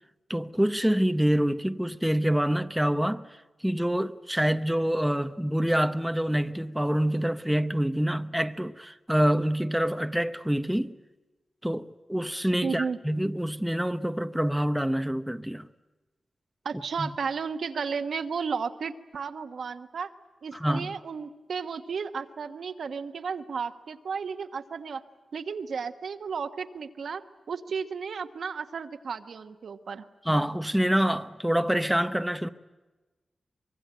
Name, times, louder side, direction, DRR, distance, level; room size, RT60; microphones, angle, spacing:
voice 1, 0.3-3.2 3.6-10.9 11.6-15.7 17.0-17.1 20.5-20.9 30.3-32.5, equal, 5° right, 0.7 m, -26 dB
voice 2, 12.6-13.0 16.6-20.1 20.4-25.0 25.3-27.2 27.5-30.0, right 5 dB, 75° right, 1.3 m, -33 dB
24.5 x 22.5 x 8.9 m
wide cardioid pair, 125°, 0 cm